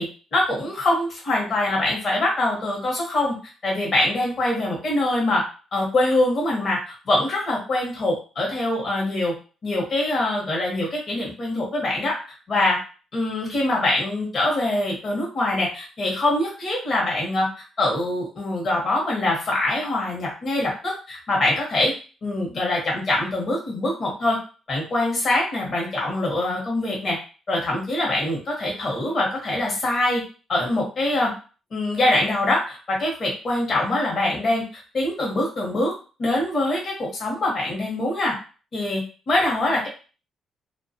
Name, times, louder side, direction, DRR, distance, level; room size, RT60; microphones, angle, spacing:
voice 1, 0.0-3.3 3.6-5.4 5.7-9.3 9.6-12.2 12.5-12.8 13.1-17.5 17.8-21.9 22.2-24.4 24.7-27.2 27.5-30.2 30.5-31.3 31.7-35.9 36.2-38.3 38.7-39.9, left 1 dB, 45° left, -2 dB, 1.0 m, -24 dB
2.3 x 2.3 x 2.7 m, 0.35 s
cardioid pair, 90°, 0 cm